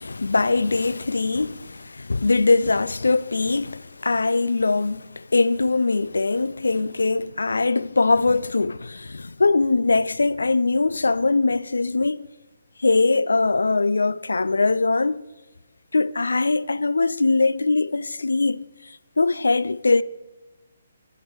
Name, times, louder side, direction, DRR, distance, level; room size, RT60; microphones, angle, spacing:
voice 1, 0.0-12.3 12.8-15.2 15.9-18.6 19.2-20.0, left 3 dB, 90° left, 0.3 m, -21 dB
14.5 x 5.5 x 4.6 m
hypercardioid pair, 150°, 0 cm